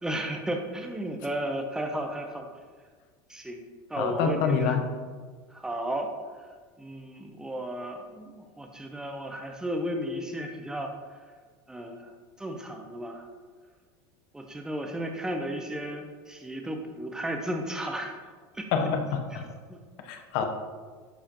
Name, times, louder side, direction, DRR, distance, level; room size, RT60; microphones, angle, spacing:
voice 1, 0.0-2.5 3.3-3.6 3.9-4.8 5.5-6.1 6.8-10.9 11.7-12.1 12.4-13.3 14.3-18.1 18.5-18.7 19.7-19.8, right 1 dB, 5° right, 3 dB, 0.7 m, -34 dB
voice 2, 4.0-4.9 18.7-19.4 20.1-20.5, left 6 dB, 60° left, 5 dB, 0.9 m, -27 dB
11.5 x 4.8 x 2.9 m, 1.5 s
supercardioid pair, 155°, 12 cm